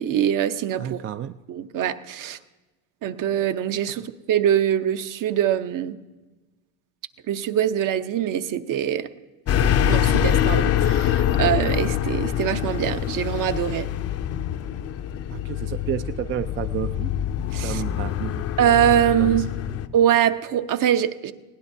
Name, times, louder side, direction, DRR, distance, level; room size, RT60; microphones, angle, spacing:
voice 1, 0.0-1.0 1.5-2.4 3.0-6.0 7.3-9.1 9.6-13.9 17.5-17.8 18.6-19.4 19.9-21.3, right 10 dB, 50° right, 10 dB, 0.9 m, -23 dB
voice 2, 0.8-1.4 2.2-2.4 15.3-17.1 17.6-18.4 19.2-19.8, right 11 dB, 30° right, 11 dB, 0.4 m, -31 dB
sound 1, 9.5-19.9, left 10 dB, 40° left, 0.6 m, -24 dB
20.0 x 17.0 x 2.7 m, 1.2 s
supercardioid pair, 105°, 40 cm